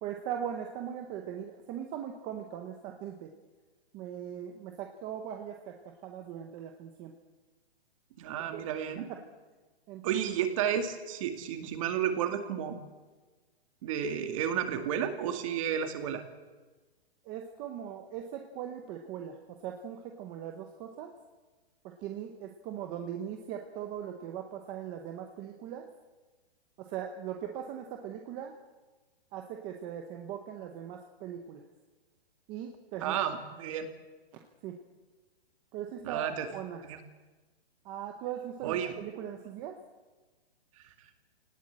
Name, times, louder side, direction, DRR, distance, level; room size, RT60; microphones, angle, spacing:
voice 1, 0.0-3.3 3.9-7.1 8.5-8.6 9.0-9.2 9.9-10.2 17.2-21.2 21.8-25.9 26.8-28.6 29.3-31.6 32.5-33.1 34.6-34.8 35.7-36.8 37.8-39.8, right 9 dB, 15° right, 4 dB, 0.8 m, -40 dB
voice 2, 8.2-9.1 10.0-12.8 13.8-16.2 33.0-33.9 36.0-36.5 36.9-37.0 38.6-38.9, right 9 dB, 30° right, 7 dB, 2.2 m, -32 dB
26.0 x 18.5 x 8.7 m, 1.3 s
hypercardioid pair, 170°, 31 cm